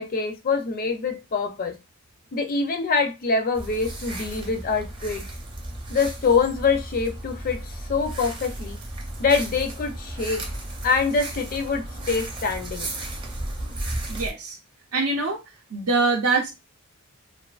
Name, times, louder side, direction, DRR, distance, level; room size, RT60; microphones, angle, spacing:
voice 1, 0.0-1.8 2.3-5.2 5.9-8.8 9.2-10.5 10.8-12.9, left 4 dB, 40° left, 0.4 m, -25 dB
sound 1, 3.5-14.3, right 1 dB, 20° right, 0.6 m, -34 dB
voice 2, 14.1-14.6 14.9-15.4 15.7-16.5, right 3 dB, 75° right, 0.6 m, -23 dB
2.4 x 2.4 x 2.3 m
head